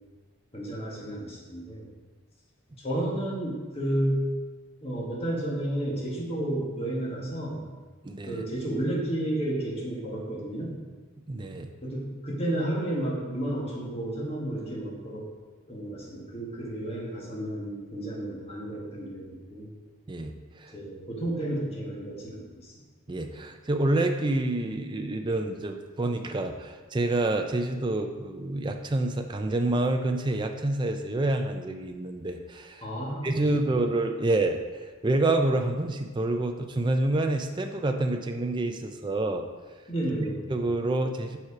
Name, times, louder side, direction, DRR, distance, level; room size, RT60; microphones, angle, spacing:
voice 1, 0.5-1.9 2.8-4.3 4.8-7.6 8.3-10.8 11.8-15.2 15.7-19.7 20.7-22.7 32.8-33.3 33.7-33.9 39.9-40.4, right 1 dB, 25° left, -4 dB, 1.4 m, -32 dB
voice 2, 8.0-8.4 11.3-11.7 20.1-20.7 23.1-32.8 33.2-39.4 40.5-41.4, right 2 dB, 20° right, 5 dB, 0.4 m, -28 dB
7.0 x 4.6 x 4.9 m, 1.4 s
head